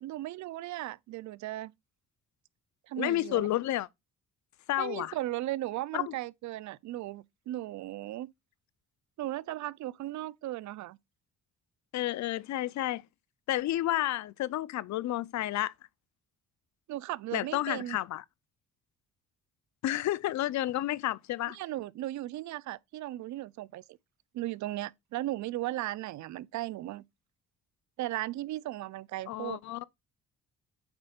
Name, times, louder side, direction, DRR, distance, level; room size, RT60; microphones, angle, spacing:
voice 1, 0.0-1.7 2.9-3.5 4.8-8.3 9.2-11.0 16.9-18.0 21.5-24.0 24.3-27.0 28.0-29.6, right 15 dB, 70° right, 0.5 m, -36 dB
voice 2, 3.0-3.9 4.7-5.1 5.9-6.1 11.9-13.0 13.5-15.7 17.3-18.2 19.8-21.6 29.3-29.8, left 14 dB, 65° left, 0.5 m, -31 dB
8.0 x 5.1 x 2.4 m
cardioid pair, 90°, 30 cm